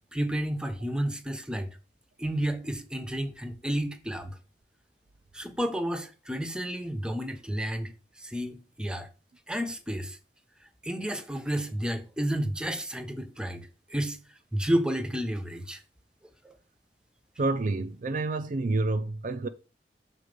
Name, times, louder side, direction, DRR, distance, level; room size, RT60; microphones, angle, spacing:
voice 1, 0.1-1.8 2.2-4.4 5.3-7.9 8.2-9.1 9.5-10.2 10.8-14.2 14.5-15.8 16.4-16.6, right 1 dB, 5° right, 0.8 m, -31 dB
voice 2, 17.4-19.5, right 2 dB, 45° right, 0.4 m, -28 dB
6.5 x 4.0 x 5.2 m
head